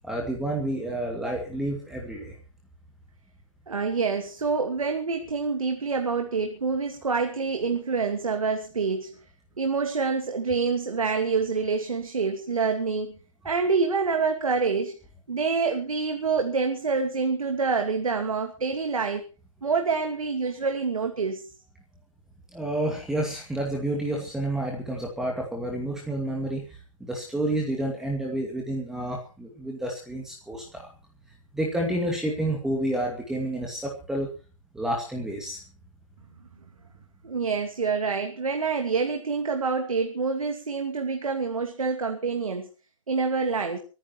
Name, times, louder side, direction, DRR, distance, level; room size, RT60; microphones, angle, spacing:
voice 1, 0.0-2.4 22.5-30.9 31.5-34.3 34.7-35.6, right 1 dB, 5° right, -1 dB, 2.3 m, -30 dB
voice 2, 3.7-9.1 9.6-13.2 13.4-14.9 15.3-19.2 19.6-21.4 37.2-42.7 43.1-43.8, right 4 dB, 90° right, 4 dB, 2.7 m, -26 dB
24.5 x 10.5 x 4.6 m, 0.36 s
hypercardioid pair, 150°, 17 cm